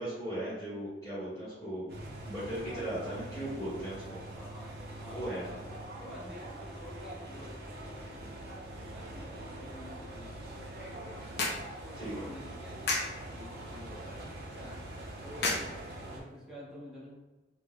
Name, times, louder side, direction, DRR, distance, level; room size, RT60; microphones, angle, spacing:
voice 1, 0.0-4.2 5.0-5.5 12.0-12.2, right 1 dB, 20° left, -13 dB, 1.4 m, -38 dB
sound 1, 1.9-16.2, right 1 dB, 60° right, 0.7 m, -44 dB
voice 2, 4.3-7.5 7.8-8.4 8.8-10.7 10.9-11.5 11.8-14.3 14.5-14.8 15.2-15.6 16.1-17.1, equal, 5° right, -10 dB, 1.1 m, -50 dB
sound 2, 10.5-16.4, left 3 dB, 65° left, 0.6 m, -38 dB
3.7 x 2.5 x 2.3 m, 1.1 s
head